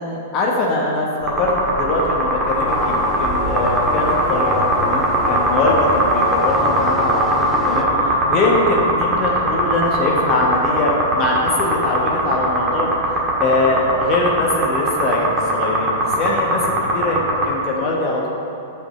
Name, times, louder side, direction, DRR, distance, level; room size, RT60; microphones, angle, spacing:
voice 1, 0.0-12.9 13.4-18.3, left 2 dB, 35° left, -2 dB, 1.1 m, -22 dB
sound 1, 1.2-17.5, right 1 dB, 20° right, 1.7 m, -19 dB
sound 2, 2.7-7.8, left 1 dB, 10° left, 0.8 m, -27 dB
6.7 x 5.2 x 6.6 m, 2.8 s
figure-of-eight pair, 105°, 0 cm